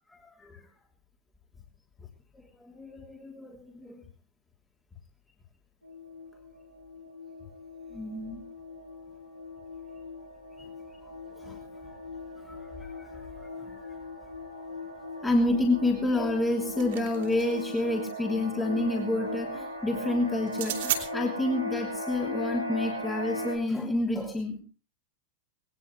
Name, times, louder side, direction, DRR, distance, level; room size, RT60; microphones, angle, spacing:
voice 1, 0.1-0.6 2.6-4.0 7.9-8.4 11.4-11.9 12.4-13.9 15.2-24.6, left 1 dB, 10° left, 1 dB, 3.0 m, -29 dB
sound 1, 5.8-23.6, left 2 dB, 85° left, 3.8 m, -38 dB
sound 2, 16.4-17.7 20.5-21.0, right 12 dB, 55° right, 3.0 m, -33 dB
19.5 x 19.5 x 3.2 m, 0.36 s
figure-of-eight pair, 90°, 0 cm